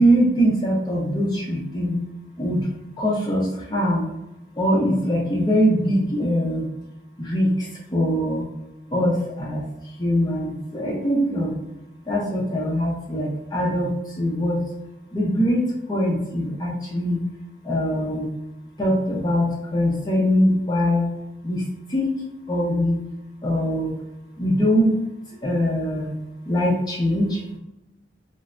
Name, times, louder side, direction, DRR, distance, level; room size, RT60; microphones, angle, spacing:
voice 1, 0.0-2.0 2.4-2.7 3.0-4.0 4.6-6.7 7.2-8.5 8.9-11.6 12.1-14.6 15.1-17.2 17.6-18.3 18.8-21.1 21.4-22.1 22.5-23.0 23.4-23.9 24.4-25.0 25.4-26.2 26.5-27.6, equal, 25° left, -3 dB, 0.5 m, -22 dB
3.2 x 2.0 x 2.4 m, 0.91 s
head